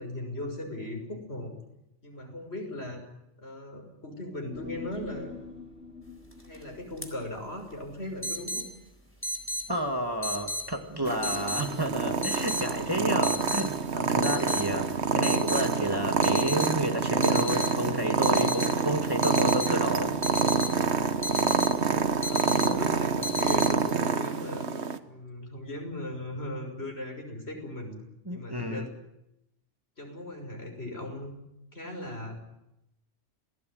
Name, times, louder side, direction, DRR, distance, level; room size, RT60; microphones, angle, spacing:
voice 1, 0.0-1.6 2.0-3.1 3.4-5.4 6.5-8.6 22.2-24.7 25.1-28.0 28.3-28.9 30.0-31.3 31.7-32.4, left 1 dB, 60° left, 3 dB, 6.5 m, -38 dB
Human voice, 4.5-9.1 9.4-9.5, left 4 dB, 90° left, 6.1 m, -45 dB
sound 1, 6.3-6.6 7.0-7.1 8.2-8.7 9.2-9.6 10.2-10.7 11.2-11.6 12.2-12.7 13.2-13.6 14.2-14.7 15.2-15.7 16.2-16.7 17.2-17.7 18.2-18.7 19.2-19.7 20.2-20.7 21.2-21.7 22.2-22.7 23.2-23.7, left 1 dB, 10° left, 4.1 m, -33 dB
voice 2, 9.7-20.2 28.3-28.9, equal, 20° right, 4 dB, 2.2 m, -31 dB
Purr, 11.1-25.0, right 5 dB, 65° right, 1.6 m, -27 dB
28.0 x 19.0 x 9.5 m, 0.86 s
omnidirectional pair, 1.2 m